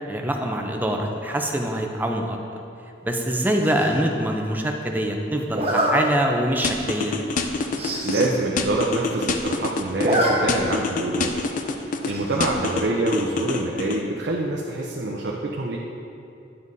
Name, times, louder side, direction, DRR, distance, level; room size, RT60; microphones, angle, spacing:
voice 1, 0.1-2.4 3.0-7.2 12.1-12.3, right 1 dB, 10° right, 2 dB, 0.5 m, -24 dB
Zipper (clothing), 3.6-4.0 5.5-5.9 6.5-6.7 7.0-7.1 7.3-7.4 7.7-8.3 8.7-8.8 8.9-9.5 9.8-10.3 10.6-10.7 12.1-12.5, right 1 dB, 35° right, 1.1 m, -25 dB
sound 1, 6.6-8.3 8.6-10.2 10.5-12.1 12.4-14.0, left 4 dB, 45° left, 0.4 m, -26 dB
voice 2, 8.0-11.5 12.0-15.8, right 2 dB, 65° right, -2 dB, 0.6 m, -26 dB
9.7 x 7.3 x 2.7 m, 2.7 s
head